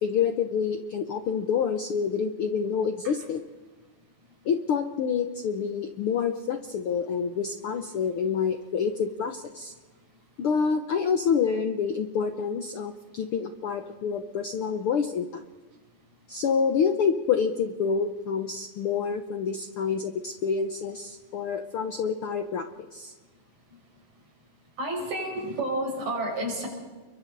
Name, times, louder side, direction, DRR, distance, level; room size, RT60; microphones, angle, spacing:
voice 1, 0.0-3.4 4.4-9.7 10.4-15.4 16.3-23.1, left 6 dB, 70° left, 7 dB, 1.3 m, -27 dB
voice 2, 24.8-26.7, right 1 dB, 85° right, 0 dB, 7.0 m, -30 dB
29.5 x 23.0 x 4.1 m, 1.3 s
omnidirectional pair, 3.7 m